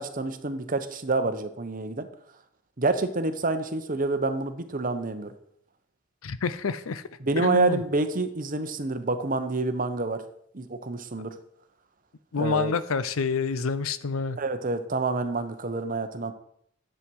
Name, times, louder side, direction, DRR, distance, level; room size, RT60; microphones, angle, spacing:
voice 1, 0.0-2.1 2.8-5.3 7.2-10.2 10.5-11.4 12.4-12.7 14.4-16.3, right 3 dB, 40° right, 9 dB, 0.9 m, -28 dB
voice 2, 6.2-7.0 7.4-7.8 12.3-14.4, left 5 dB, 85° left, 15 dB, 0.6 m, -28 dB
10.5 x 7.7 x 4.7 m, 0.69 s
head